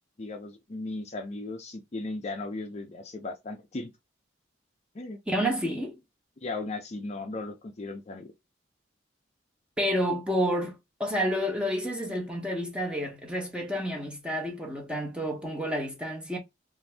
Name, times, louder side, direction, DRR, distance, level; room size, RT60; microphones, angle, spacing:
voice 1, 0.2-3.9 4.9-5.2 6.4-8.3, left 2 dB, 35° left, 0.4 m, -36 dB
voice 2, 5.3-6.0 9.8-16.4, equal, 5° right, 0.7 m, -30 dB
2.6 x 2.5 x 3.2 m
head